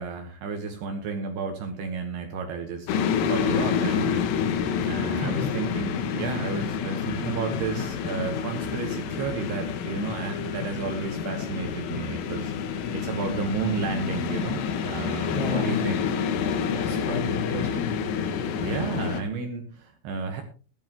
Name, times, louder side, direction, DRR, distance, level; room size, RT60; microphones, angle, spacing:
voice 1, 0.0-2.9 3.3-4.3 4.8-12.5 12.9-16.0 18.4-20.4, right 5 dB, 65° right, 5 dB, 2.7 m, -32 dB
sound 1, 2.9-19.2, left 7 dB, 80° left, 4.0 m, -28 dB
voice 2, 15.3-16.1 16.7-18.0, left 4 dB, 55° left, 1 dB, 2.5 m, -31 dB
16.0 x 12.5 x 3.0 m, 0.36 s
omnidirectional pair, 5.9 m